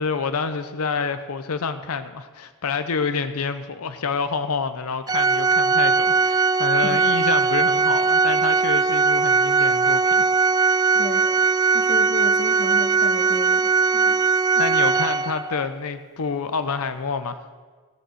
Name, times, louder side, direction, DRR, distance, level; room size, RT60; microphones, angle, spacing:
voice 1, 0.0-10.2 14.5-17.4, left 5 dB, 75° left, 11 dB, 0.6 m, -28 dB
Organ, 5.1-15.7, right 4 dB, 15° right, 0.3 m, -19 dB
voice 2, 10.9-14.2, left 2 dB, 45° left, 7 dB, 1.1 m, -34 dB
17.5 x 6.9 x 7.6 m, 1.5 s
head